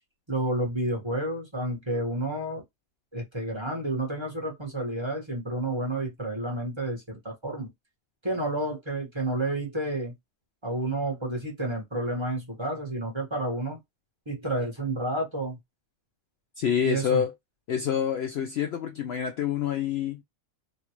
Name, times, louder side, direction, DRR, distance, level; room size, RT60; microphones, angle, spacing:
voice 1, 0.3-2.6 3.1-7.7 8.2-10.1 10.6-13.8 14.3-15.6 16.8-17.2, right 1 dB, 20° right, 1.2 m, -30 dB
voice 2, 16.6-17.3 17.7-20.2, left 8 dB, 65° left, 0.7 m, -27 dB
3.2 x 2.5 x 2.8 m
omnidirectional pair, 1.5 m